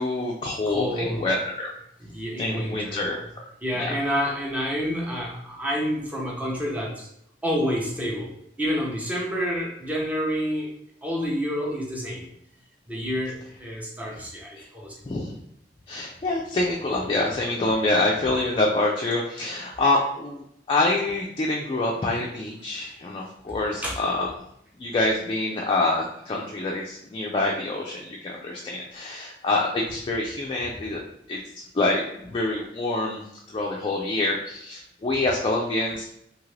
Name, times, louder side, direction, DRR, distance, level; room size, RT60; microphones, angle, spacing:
voice 1, 0.0-1.7 2.4-3.4 3.9-4.0 14.6-14.7 15.1-15.3 15.9-24.3 24.8-31.0 31.3-31.4 31.7-36.1, left 2 dB, 30° left, -1 dB, 0.3 m, -26 dB
voice 2, 0.6-1.3 2.0-3.1 3.6-7.1 7.4-8.3 8.6-10.7 11.0-12.3 12.9-15.0 23.5-23.6 23.8-24.0, equal, 10° right, -2 dB, 0.7 m, -28 dB
2.8 x 2.5 x 3.1 m, 0.75 s
head